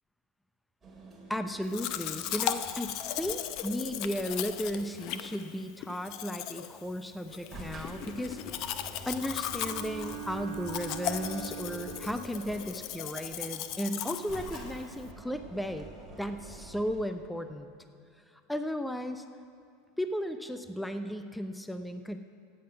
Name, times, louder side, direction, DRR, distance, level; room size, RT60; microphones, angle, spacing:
sound 1, 0.8-2.8 7.3-13.1 14.1-17.0, right 2 dB, 15° right, 2.8 m, -48 dB
voice 1, 1.3-8.4 9.1-15.9 16.2-17.7 18.5-19.2 20.0-22.2, equal, 5° left, 8 dB, 0.5 m, -35 dB
Domestic sounds home sounds, 1.7-15.1, left 11 dB, 50° left, 0.6 m, -37 dB
Bowed string instrument, 9.5-12.6, right 11 dB, 80° right, 1.3 m, -43 dB
15.5 x 8.7 x 5.7 m, 2.3 s
supercardioid pair, 130°, 0 cm